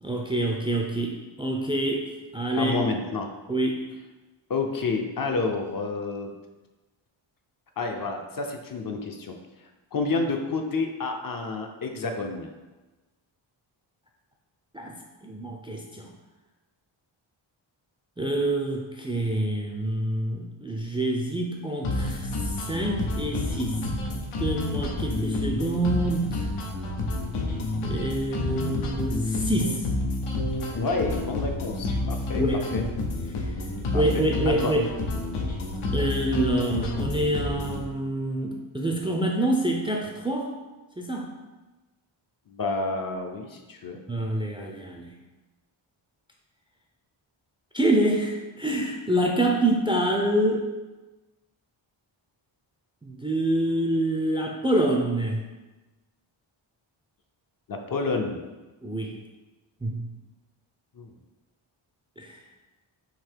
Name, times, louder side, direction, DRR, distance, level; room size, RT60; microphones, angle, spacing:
voice 1, 0.0-2.7 3.5-3.9 14.7-15.0 15.2-16.1 18.2-22.3 22.7-23.8 24.1-26.5 27.8-29.9 32.3-32.6 33.4-33.5 33.9-34.8 35.9-40.5 41.0-41.3 44.1-45.1 47.7-50.7 53.0-55.4 58.8-59.1 59.8-60.1 62.2-62.4, right 1 dB, 10° right, 0 dB, 0.4 m, -26 dB
voice 2, 2.6-3.3 4.5-6.3 7.8-9.3 9.9-12.5 30.8-32.4 32.7-32.8 33.9-34.7 42.5-44.0 57.7-58.4 61.0-61.1, left 3 dB, 45° left, 3 dB, 0.6 m, -29 dB
sound 1, 21.8-37.8, left 2 dB, 85° left, 0.8 m, -29 dB
4.0 x 2.8 x 4.5 m, 1.2 s
wide cardioid pair, 95°, 49 cm